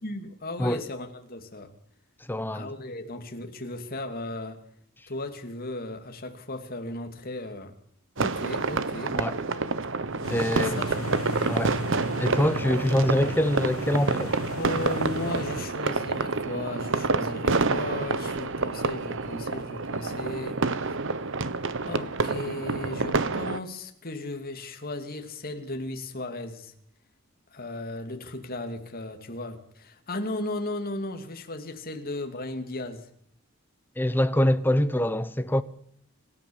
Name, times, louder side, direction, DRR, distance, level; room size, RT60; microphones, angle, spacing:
voice 1, 0.0-1.7 2.5-4.6 5.1-7.7 8.2-9.2 10.3-11.1 11.4-11.6 14.6-21.0 21.9-26.7 27.5-33.1, left 2 dB, 45° left, 2.7 m, -36 dB
voice 2, 2.3-2.7 9.1-9.4 10.3-10.8 11.5-11.8 12.2-14.4 34.0-35.6, left 1 dB, 10° left, 0.9 m, -24 dB
sound 1, 8.2-23.6, right 3 dB, 60° right, 1.2 m, -28 dB
sound 2, 10.2-15.6, left 1 dB, 75° left, 3.1 m, -36 dB
26.5 x 13.5 x 7.2 m
head